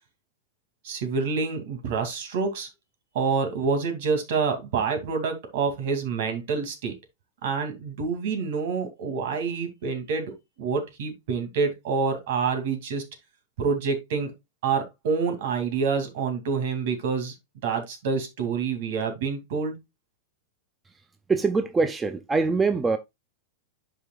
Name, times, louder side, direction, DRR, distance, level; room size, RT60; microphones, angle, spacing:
voice 1, 0.8-2.7 3.1-6.9 7.4-10.3 10.6-13.0 13.6-14.3 14.6-17.3 17.6-19.8, right 5 dB, 55° right, 2.5 m, -27 dB
voice 2, 21.3-23.0, right 4 dB, 10° right, 0.4 m, -23 dB
11.0 x 5.1 x 2.4 m
supercardioid pair, 170°, 0 cm